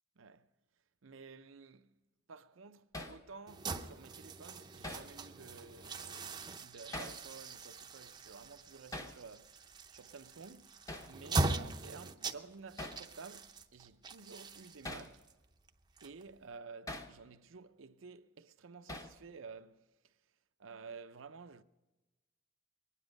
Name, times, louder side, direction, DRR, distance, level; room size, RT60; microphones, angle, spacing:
voice 1, 0.2-0.5 1.0-2.0 2.3-15.3 16.0-20.1 20.6-21.6, right 4 dB, 80° right, 0.6 m, -53 dB
Hammer, 2.9-3.2 4.8-5.1 6.9-7.2 8.9-9.2 10.9-11.1 12.8-13.0 14.8-15.1 16.9-17.1 18.9-19.2, left 1 dB, 15° left, 0.9 m, -43 dB
sound 1, 3.5-16.5, right 2 dB, 20° right, 0.6 m, -41 dB
22.0 x 10.0 x 5.2 m
head